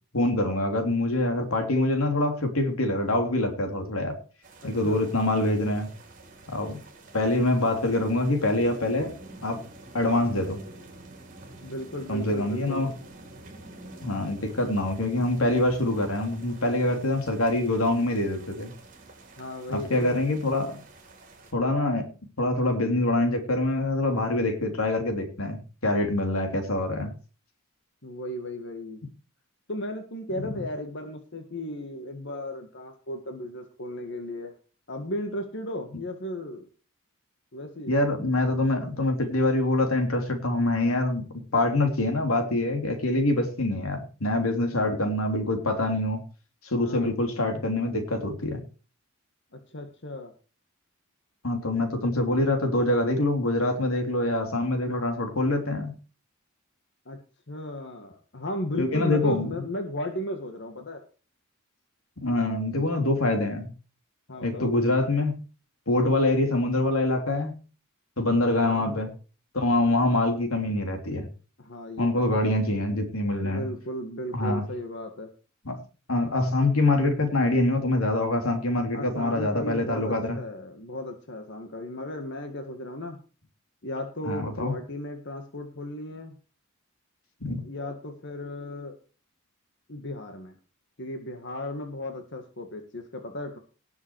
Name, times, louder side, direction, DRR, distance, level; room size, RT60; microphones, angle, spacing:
voice 1, 0.1-4.2 4.6-5.9 6.5-6.8 7.1-9.1 9.4-9.6 9.9-10.6 12.1-12.9 14.0-18.7 19.7-20.8 21.5-22.1 22.4-27.1 30.4-30.5 37.9-41.3 41.5-46.2 46.6-48.6 51.4-55.9 58.8-59.5 62.2-63.7 64.4-65.4 65.9-67.6 68.2-69.1 69.5-71.3 72.0-73.7 74.3-74.6 75.6-75.8 76.1-80.4 84.2-84.7 87.4-87.6, left 2 dB, 85° left, 5 dB, 3.4 m, -25 dB
sound 1, 4.4-21.5, right 2 dB, 40° right, 5.0 m, -48 dB
voice 2, 4.6-5.1 11.6-12.8 19.4-20.2 28.0-29.0 29.7-34.5 34.9-36.7 37.5-37.9 46.8-47.1 49.5-50.3 57.1-57.2 57.5-61.0 64.3-64.7 68.5-69.0 71.6-72.5 73.4-75.3 78.9-83.2 83.8-86.3 87.6-89.0 89.9-90.6 91.0-93.6, left 1 dB, 60° left, 4 dB, 1.8 m, -35 dB
18.5 x 7.2 x 4.8 m, 0.36 s
head